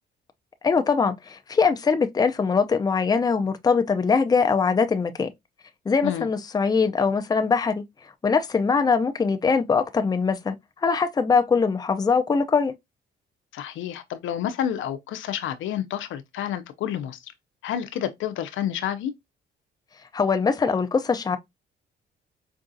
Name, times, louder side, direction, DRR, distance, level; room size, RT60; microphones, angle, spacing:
voice 1, 0.6-5.3 5.9-7.8 8.2-10.6 10.8-12.7 20.1-21.4, left 5 dB, 20° left, 0.5 m, -22 dB
voice 2, 13.5-17.3 17.6-19.1, left 10 dB, 80° left, 0.5 m, -29 dB
4.8 x 2.4 x 2.6 m
cardioid pair, 90°, 20 cm